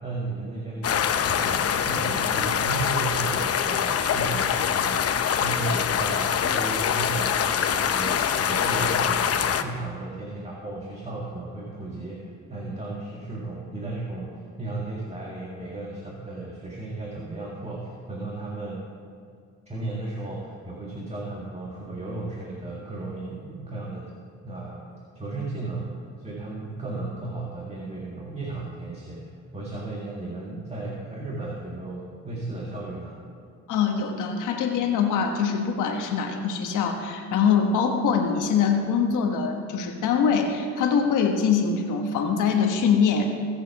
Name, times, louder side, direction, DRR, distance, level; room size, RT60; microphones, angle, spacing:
voice 1, 0.0-5.1 5.4-18.8 19.7-24.1 24.4-24.8 25.2-33.2, right 2 dB, 20° right, -3 dB, 2.0 m, -34 dB
sound 1, 0.8-9.6, left 8 dB, 50° left, 0.8 m, -24 dB
voice 2, 33.7-43.3, left 6 dB, 85° left, 3 dB, 1.3 m, -23 dB
21.5 x 7.4 x 4.7 m, 2.3 s
cardioid pair, 90°, 30 cm